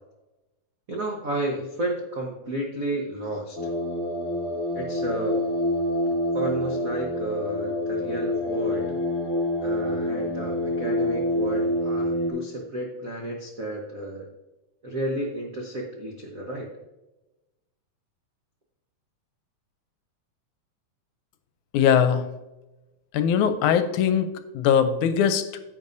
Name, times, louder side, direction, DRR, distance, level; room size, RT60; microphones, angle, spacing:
voice 1, 0.9-3.6 4.7-5.4 6.3-9.0 9.6-14.3 14.8-16.7, right 1 dB, 70° right, -1 dB, 0.7 m, -32 dB
sound 1, 3.6-12.3, left 1 dB, 30° left, 1.8 m, -27 dB
voice 2, 21.7-22.3 23.1-24.3 24.5-25.4, left 8 dB, 80° left, 10 dB, 2.1 m, -20 dB
10.5 x 8.6 x 2.7 m, 1.0 s
omnidirectional pair, 3.5 m